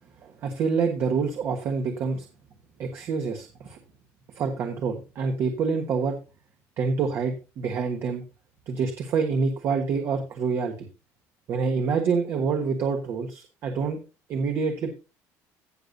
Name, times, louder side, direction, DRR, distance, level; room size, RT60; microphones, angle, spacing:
voice 1, 0.2-2.2 2.8-3.8 4.4-6.2 6.8-8.2 8.7-10.9 11.5-14.0 14.3-14.9, right 5 dB, 45° right, 4 dB, 1.3 m, -27 dB
16.5 x 6.7 x 2.6 m, 0.30 s
cardioid pair, 175°, 6 cm